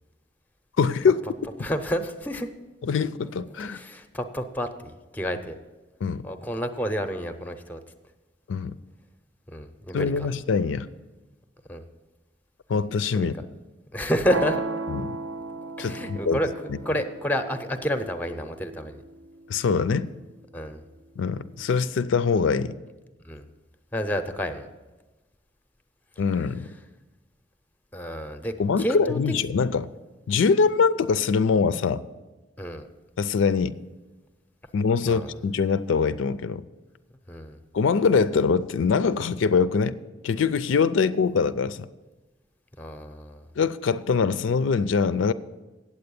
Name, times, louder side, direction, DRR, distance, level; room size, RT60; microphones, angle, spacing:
voice 1, 0.8-1.4 2.8-3.8 6.0-6.2 8.5-8.8 9.9-10.9 12.7-13.3 14.9-15.1 15.8-16.4 16.7-16.8 19.5-20.1 21.2-22.8 26.2-26.7 28.6-29.9 30.3-32.0 33.2-33.8 34.7-36.6 37.7-40.0 40.2-41.9 43.6-45.3, left 5 dB, 85° left, 0.4 m, -23 dB
voice 2, 1.6-2.5 3.5-5.6 6.2-7.8 9.5-10.3 11.7-11.8 13.1-13.3 13.9-14.6 15.6-16.5 16.8-19.0 20.5-20.8 23.2-23.5 23.9-24.7 27.9-29.2 32.6-32.9 35.1-35.4 37.3-37.6 42.8-43.5, equal, 10° left, 0.6 m, -30 dB
sound 1, 14.3-20.3, right 3 dB, 80° right, 0.6 m, -36 dB
8.6 x 7.8 x 6.9 m
head